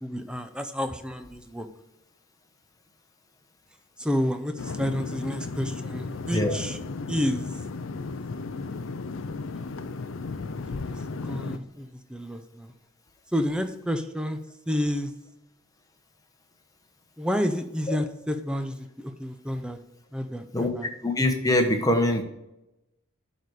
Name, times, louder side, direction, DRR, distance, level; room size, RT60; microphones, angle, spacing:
voice 1, 0.0-1.7 4.0-6.8 7.1-7.4 10.7-12.7 13.3-14.4 14.7-15.1 17.2-19.8 20.1-20.9, equal, 5° right, 8 dB, 0.6 m, -30 dB
sound 1, 4.6-11.6, left 3 dB, 60° left, 0.5 m, -35 dB
voice 2, 21.0-22.2, left 1 dB, 15° left, 4 dB, 1.0 m, -23 dB
11.0 x 4.1 x 4.8 m, 0.92 s
head